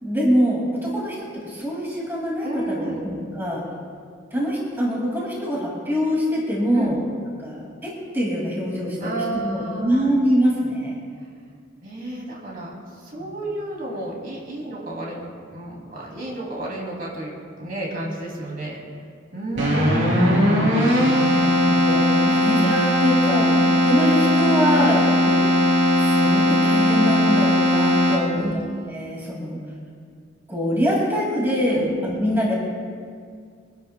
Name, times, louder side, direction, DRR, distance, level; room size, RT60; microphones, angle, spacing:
voice 1, 0.0-3.6 4.3-7.0 7.4-11.0 13.2-13.3 20.1-21.1 21.3-23.5 23.9-25.5 26.0-28.6 28.9-29.6 30.5-32.5, equal, 10° right, -4 dB, 2.1 m, -24 dB
voice 2, 2.4-3.0 6.7-7.0 9.0-10.1 11.8-18.8 19.3-20.2 21.1-21.7 23.3-23.4 24.7-24.9 28.2-28.5 31.7-31.9, right 2 dB, 45° right, -3 dB, 2.6 m, -31 dB
Keyboard (musical), 19.6-28.5, left 1 dB, 70° right, 3.2 m, -18 dB
23.5 x 11.5 x 2.2 m, 2.1 s
head